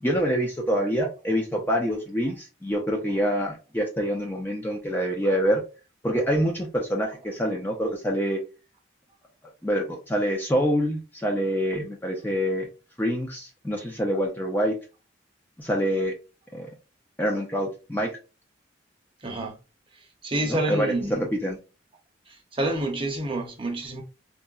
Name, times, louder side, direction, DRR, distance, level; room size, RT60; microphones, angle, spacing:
voice 1, 0.0-5.6 6.0-8.4 9.6-12.7 13.0-14.8 15.6-16.1 16.5-16.7 17.2-18.2 20.5-21.6, equal, 10° left, 0.4 m, -26 dB
voice 2, 19.2-19.6 20.2-21.2 22.3-24.0, right 1 dB, 25° right, 0.6 m, -28 dB
3.6 x 2.1 x 2.3 m
head